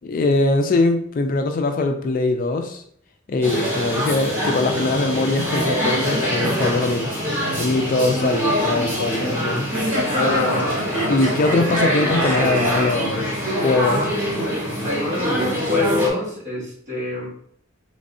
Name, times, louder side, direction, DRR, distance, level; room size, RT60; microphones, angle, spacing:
voice 1, 0.0-2.8 3.3-7.1 7.6-9.7 11.1-13.3 13.6-14.1, left 3 dB, 40° left, 5 dB, 0.3 m, -21 dB
sound 1, 3.4-16.1, equal, 10° right, 1.1 m, -24 dB
sound 2, 9.7-12.9, right 1 dB, 65° right, 1.4 m, -28 dB
voice 2, 10.1-10.8 14.8-17.3, left 2 dB, 35° right, -4 dB, 1.2 m, -24 dB
3.5 x 3.1 x 2.6 m, 0.64 s
head